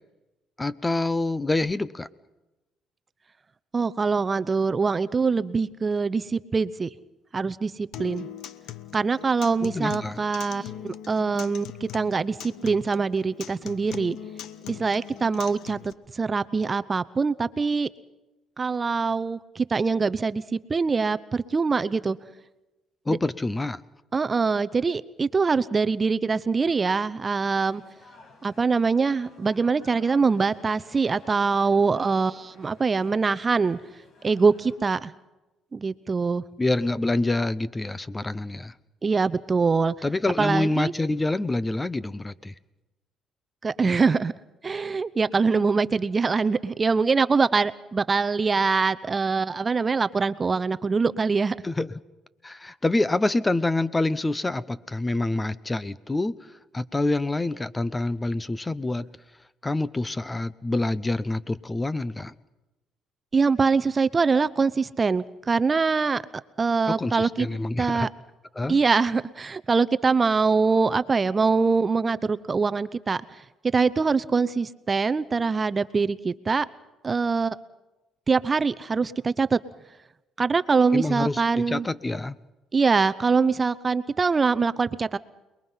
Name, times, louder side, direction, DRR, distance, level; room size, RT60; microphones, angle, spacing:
voice 1, 0.6-2.1 9.6-10.2 23.1-23.8 36.6-38.7 40.0-42.5 51.6-51.9 52.4-56.4 56.7-59.1 59.6-62.3 66.9-68.1 68.5-68.8 80.9-82.4, left 2 dB, 15° left, 18 dB, 0.8 m, -26 dB
voice 2, 3.7-6.9 7.3-8.3 8.9-14.2 14.7-17.9 18.6-22.2 23.1-23.2 24.1-27.8 28.4-33.8 34.2-35.1 35.7-36.4 39.0-39.9 40.4-40.9 43.6-44.3 44.6-51.6 63.3-66.2 66.6-67.5 67.8-68.1 68.7-73.2 73.7-76.7 77.0-77.6 78.3-79.6 80.4-81.9 82.7-85.2, right 4 dB, 30° right, 14 dB, 0.8 m, -23 dB
Acoustic guitar, 7.9-15.9, left 11 dB, 70° left, 1.1 m, -41 dB
sound 1, 27.7-34.8, left 2 dB, 55° left, 5.7 m, -53 dB
28.5 x 21.5 x 5.7 m, 1.0 s
cardioid pair, 95°, 0 cm